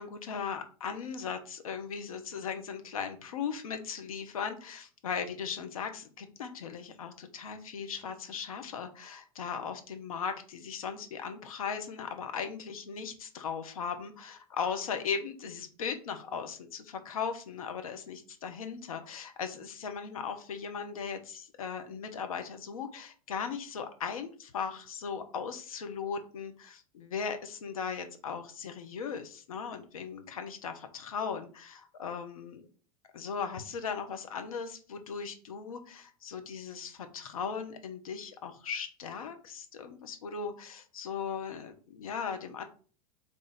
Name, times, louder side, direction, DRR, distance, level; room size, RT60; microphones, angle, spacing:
voice 1, 0.0-32.6 33.1-42.6, left 6 dB, 80° left, 7 dB, 0.9 m, -38 dB
3.5 x 3.3 x 4.1 m, 0.40 s
hypercardioid pair, 90°, 18 cm